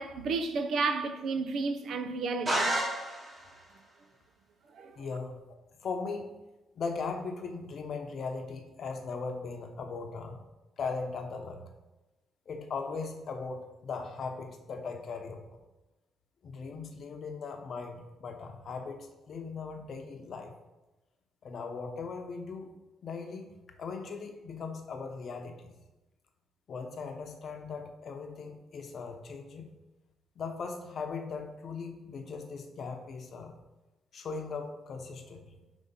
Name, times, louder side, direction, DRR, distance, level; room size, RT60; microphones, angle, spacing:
voice 1, 0.0-2.7 4.7-5.0, right 4 dB, 70° right, 0.5 m, -32 dB
sound 1, 2.5-3.5, right 1 dB, 30° right, 1.9 m, -30 dB
voice 2, 5.0-6.3 6.8-10.4 10.8-11.6 12.5-15.6 16.4-20.5 21.4-22.7 23.0-23.5 23.8-25.7 26.7-29.7 30.4-33.5 34.1-35.5, left 4 dB, 55° left, 0.8 m, -39 dB
5.3 x 3.3 x 5.4 m
cardioid pair, 90°, 0 cm